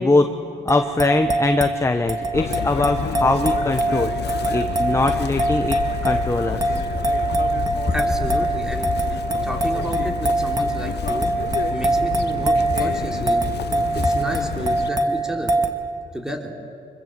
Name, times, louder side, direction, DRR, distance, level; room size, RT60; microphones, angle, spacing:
voice 1, 0.0-5.8 6.0-6.6, left 2 dB, 15° left, 7 dB, 1.1 m, -22 dB
sound 1, 0.7-15.7, right 2 dB, 20° right, 2.1 m, -24 dB
Chirp tweet, 2.3-14.9, left 9 dB, 60° left, 0.9 m, -29 dB
voice 2, 7.9-11.3 11.7-15.5 16.1-16.5, equal, 5° right, 1 dB, 3.5 m, -31 dB
25.0 x 23.0 x 7.6 m, 2.6 s
cardioid pair, 90°, 20 cm